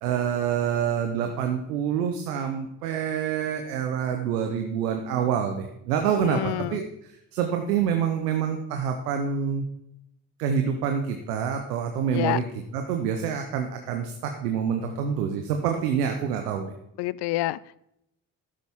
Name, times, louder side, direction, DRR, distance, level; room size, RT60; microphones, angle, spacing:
voice 1, 0.0-6.8 7.3-9.6 10.4-12.4 12.7-16.7, right 7 dB, 85° right, 0.9 m, -27 dB
voice 2, 6.2-6.9 12.1-12.4 17.0-17.8, left 18 dB, 60° left, 0.5 m, -28 dB
12.0 x 10.5 x 3.6 m
hypercardioid pair, 45°, 45 cm